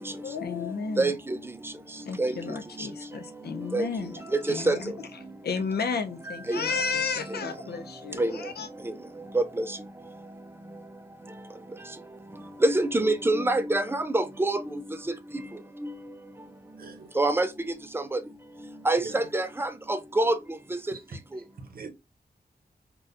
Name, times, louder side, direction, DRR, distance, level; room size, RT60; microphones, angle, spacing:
voice 1, 0.2-1.1 2.1-4.9 5.4-8.7, left 5 dB, 75° left, 0.6 m, -32 dB
voice 2, 1.0-1.4 2.2-2.3 3.7-3.9 4.3-4.8 6.5-6.6 8.2-8.4 8.8-8.9 9.3-9.6 12.6-14.8 15.8-15.9 17.2-18.2 18.9-20.4 20.7-20.8, right 2 dB, 15° right, 0.3 m, -25 dB
voice 3, 16.8-17.1 19.0-19.2 20.9-21.0 21.6-21.9, right 4 dB, 65° right, 0.7 m, -40 dB
4.0 x 2.3 x 2.4 m
wide cardioid pair, 140°, 17 cm